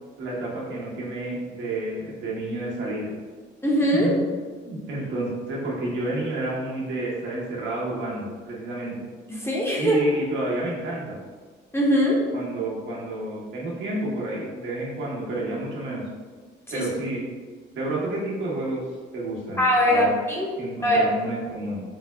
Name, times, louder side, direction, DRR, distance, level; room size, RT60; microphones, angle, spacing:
voice 1, 0.2-3.1 4.0-4.3 4.6-8.9 9.7-11.2 12.3-16.0 16.7-17.3 17.7-18.8 19.1-20.1 20.6-21.8, right 2 dB, 70° right, -5 dB, 1.0 m, -30 dB
voice 2, 3.6-4.1 9.3-10.0 11.7-12.2 16.7-16.8 19.6-20.5 20.8-21.0, equal, 10° left, -3 dB, 0.7 m, -21 dB
4.1 x 2.0 x 3.3 m, 1.5 s
cardioid pair, 90°, 20 cm